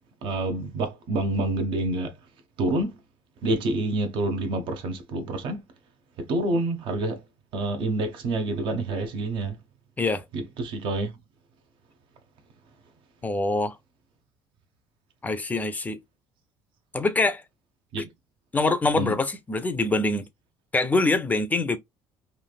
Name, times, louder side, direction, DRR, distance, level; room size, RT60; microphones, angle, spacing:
voice 1, 0.2-2.1 2.6-2.9 3.4-5.6 6.3-7.2 7.5-9.6 10.3-11.1 17.9-18.1 18.9-19.1, right 2 dB, 60° right, 0.8 m, -27 dB
voice 2, 13.2-13.8 15.2-16.0 16.9-17.4 18.5-20.2 20.7-21.8, left 3 dB, 15° left, 0.4 m, -24 dB
3.2 x 2.5 x 2.2 m
cardioid pair, 135°, 10 cm